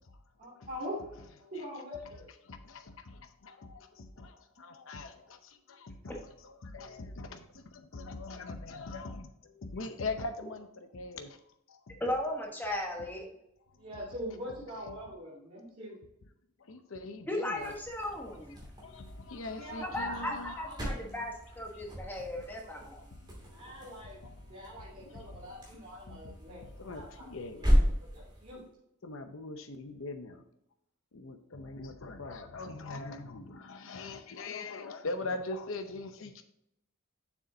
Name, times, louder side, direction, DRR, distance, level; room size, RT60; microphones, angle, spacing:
voice 1, 0.4-1.0 1.4-2.3 13.8-16.0 19.5-21.0 23.5-24.2 24.5-27.3 27.7-27.8 28.1-28.6, equal, 35° right, -10 dB, 2.7 m, -43 dB
voice 2, 2.4-11.4 11.7-12.0 13.8-13.9 15.1-15.2 16.6-17.7 18.8-20.6 23.1-27.7 29.0-30.4 31.1-36.4, left 3 dB, 65° left, 7 dB, 0.7 m, -42 dB
voice 3, 12.0-13.3 17.3-18.6 19.8-22.8, left 1 dB, 10° left, 0 dB, 1.1 m, -36 dB
sound 1, 17.5-28.7, equal, 20° right, 2.4 m, -35 dB
7.1 x 6.6 x 2.7 m, 0.79 s
head